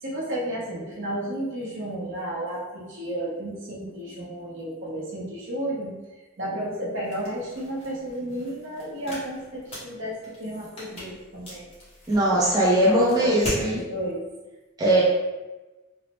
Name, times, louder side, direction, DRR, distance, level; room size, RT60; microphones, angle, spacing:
voice 1, 0.0-5.9 6.4-11.7 12.3-14.2, right 1 dB, 60° right, -4 dB, 0.8 m, -32 dB
sound 1, 7.0-13.7, equal, 30° left, 0.9 m, -40 dB
voice 2, 12.1-13.8 14.8-15.0, right 1 dB, 20° right, -7 dB, 0.5 m, -20 dB
3.0 x 2.0 x 2.9 m, 1.1 s
head